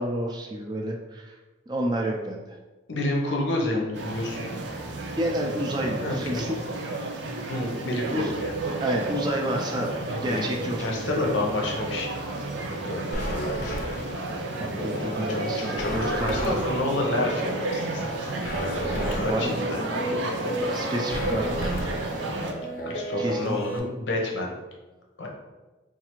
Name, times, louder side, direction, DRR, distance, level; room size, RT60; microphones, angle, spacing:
voice 1, 0.0-1.4 1.7-2.6 5.2-6.6 8.1-8.3 8.6-9.9 10.2-11.3 14.6-16.6 19.0-19.5 20.7-21.7 23.2-23.9, right 1 dB, 25° right, 1 dB, 0.3 m, -30 dB
voice 2, 2.9-4.5 6.0-6.4 7.5-8.5 9.8-13.9 15.2-18.3 18.9-19.8 22.8-24.5 25.2-25.3, left 2 dB, 85° left, 0 dB, 0.7 m, -30 dB
sound 1, 3.9-22.5, right 2 dB, 90° right, 0.5 m, -32 dB
sound 2, 13.1-23.8, equal, 50° left, 0.5 m, -33 dB
4.5 x 2.4 x 2.9 m, 1.2 s
head